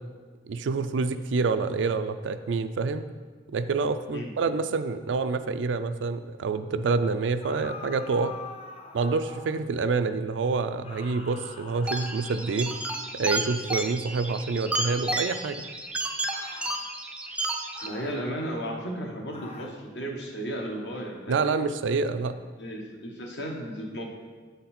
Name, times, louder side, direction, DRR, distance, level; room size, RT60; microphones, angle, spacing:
voice 1, 0.5-3.1 3.5-8.3 8.9-12.7 13.2-15.6 21.3-22.4, right 4 dB, 85° right, 10 dB, 0.4 m, -27 dB
sound 1, 7.4-9.7 10.8-13.1 14.7-15.1 16.3-16.8 17.7-18.3 19.3-19.8, left 3 dB, 35° left, 0.6 m, -44 dB
sound 2, 11.9-17.9, right 2 dB, 5° right, 0.3 m, -32 dB
voice 2, 17.8-21.6 22.6-24.0, equal, 70° left, 0 dB, 1.1 m, -34 dB
8.0 x 4.0 x 4.3 m, 1.5 s
head